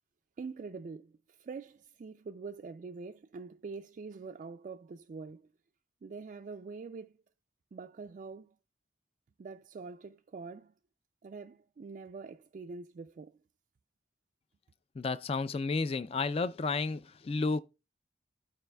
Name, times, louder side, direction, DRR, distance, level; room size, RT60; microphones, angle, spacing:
voice 1, 0.4-5.5 6.0-7.2 7.7-8.6 9.4-10.7 11.2-13.4, right 4 dB, 45° right, 0.3 m, -45 dB
voice 2, 15.0-17.6, left 4 dB, 35° left, 0.3 m, -32 dB
14.5 x 4.8 x 2.2 m
head